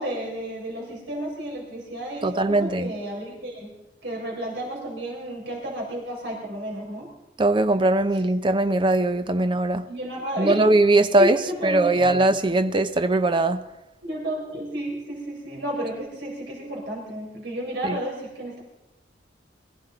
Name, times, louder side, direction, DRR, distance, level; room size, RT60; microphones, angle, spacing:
voice 1, 0.0-3.7 4.0-7.1 9.9-10.6 11.2-12.1 14.0-18.6, right 1 dB, 70° right, 4.3 m, -32 dB
voice 2, 2.2-2.9 7.4-9.9 10.4-11.4 11.6-13.6 17.8-18.0, right 2 dB, 25° right, 0.6 m, -20 dB
22.0 x 15.0 x 3.9 m
head